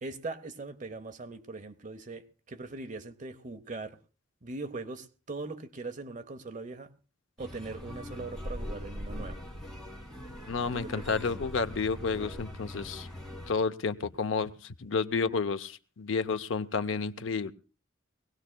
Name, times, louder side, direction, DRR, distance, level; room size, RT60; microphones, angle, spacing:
voice 1, 0.0-4.0 4.4-6.9 7.4-9.4 10.7-11.2, right 3 dB, 40° right, 0.8 m, -40 dB
sound 1, 7.4-13.5, left 1 dB, 5° left, 2.6 m, -41 dB
voice 2, 10.5-13.1 13.5-17.5, left 4 dB, 85° left, 0.6 m, -31 dB
22.0 x 17.5 x 2.2 m
head